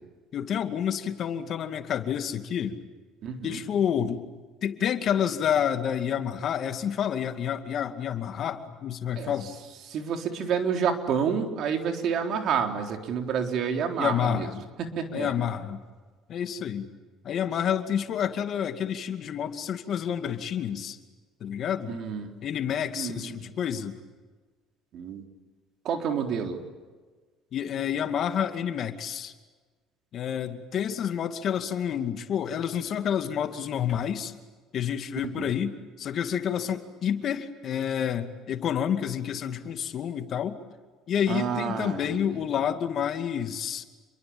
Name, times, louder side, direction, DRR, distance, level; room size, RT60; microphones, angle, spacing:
voice 1, 0.3-2.8 3.4-4.2 4.6-9.5 14.0-14.6 15.1-15.8 16.3-16.9 17.2-21.0 21.4-22.0 22.4-24.0 27.5-29.3 30.1-34.3 34.7-40.6 41.1-43.8, left 9 dB, 55° left, 7 dB, 2.3 m, -29 dB
voice 2, 3.2-3.6 9.2-9.5 9.9-14.5 14.8-15.3 21.9-22.3 23.0-23.4 24.9-25.2 25.8-26.6 35.2-35.5 41.3-42.4, right 7 dB, 60° right, 4 dB, 3.8 m, -29 dB
29.0 x 23.0 x 8.8 m, 1.4 s
supercardioid pair, 100°, 0 cm